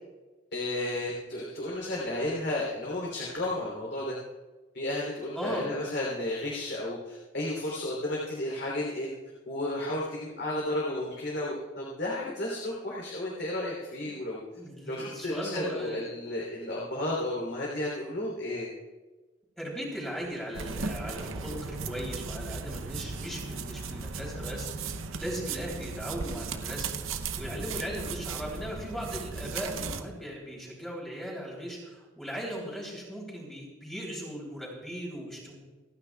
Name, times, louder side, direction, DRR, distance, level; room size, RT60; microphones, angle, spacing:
voice 1, 0.5-4.1 4.7-9.1 9.5-14.4 14.9-18.7, left 1 dB, 55° left, -3 dB, 3.2 m, -33 dB
voice 2, 5.3-5.8 14.1-14.2 14.5-16.1 19.6-35.6, equal, 5° left, -3 dB, 3.2 m, -38 dB
sound 1, 20.5-30.0, right 4 dB, 90° right, 0.8 m, -36 dB
28.0 x 9.7 x 2.3 m, 1.3 s
head